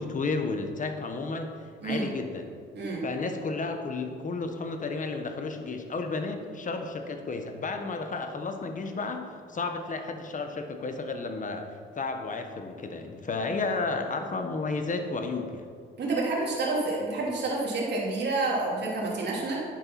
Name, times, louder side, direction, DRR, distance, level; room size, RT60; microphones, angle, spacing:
voice 1, 0.0-1.5 1.8-2.5 3.0-15.6, left 3 dB, 40° left, 6 dB, 1.3 m, -32 dB
voice 2, 16.0-19.6, right 3 dB, 55° right, -4 dB, 3.0 m, -29 dB
10.0 x 7.2 x 5.9 m, 2.1 s
cardioid pair, 90°, 21 cm